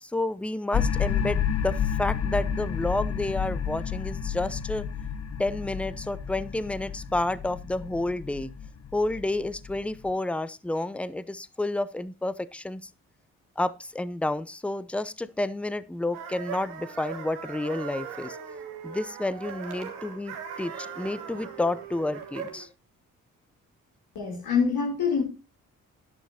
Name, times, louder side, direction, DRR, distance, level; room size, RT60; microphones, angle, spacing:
voice 1, 0.0-4.9 5.4-8.5 8.9-12.8 13.6-18.4 18.8-22.7, left 2 dB, 5° left, 16 dB, 0.7 m, -30 dB
sound 1, 0.7-10.1, left 7 dB, 40° left, 1.1 m, -30 dB
sound 2, 16.1-22.7, right 7 dB, 80° right, 1.8 m, -39 dB
voice 2, 24.2-25.2, left 6 dB, 65° left, 0 dB, 3.4 m, -25 dB
12.5 x 11.0 x 2.9 m, 0.29 s
hypercardioid pair, 40°, 39 cm